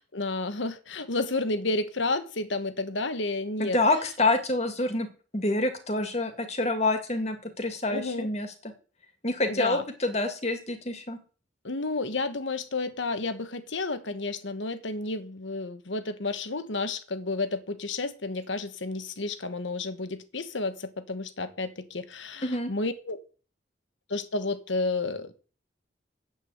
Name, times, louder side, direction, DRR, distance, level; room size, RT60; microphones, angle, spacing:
voice 1, 0.1-3.8 7.9-8.3 9.5-9.8 11.6-23.2 24.1-25.4, left 3 dB, 85° left, 1.3 m, -31 dB
voice 2, 3.6-5.1 5.3-8.5 9.2-11.2 22.4-22.7, left 2 dB, 35° left, 2.1 m, -27 dB
8.4 x 8.2 x 8.2 m
head